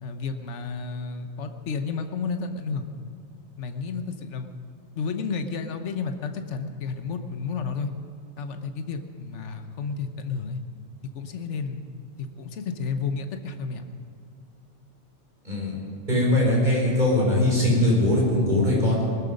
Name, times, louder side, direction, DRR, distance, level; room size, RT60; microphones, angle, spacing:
voice 1, 0.0-2.9 3.6-4.5 4.9-7.9 8.4-10.6 11.1-11.9 12.2-13.8, left 5 dB, 65° left, 7 dB, 1.3 m, -31 dB
voice 2, 16.1-19.0, left 1 dB, 35° right, -4 dB, 5.2 m, -21 dB
19.5 x 13.0 x 5.3 m, 2.5 s
omnidirectional pair, 1.3 m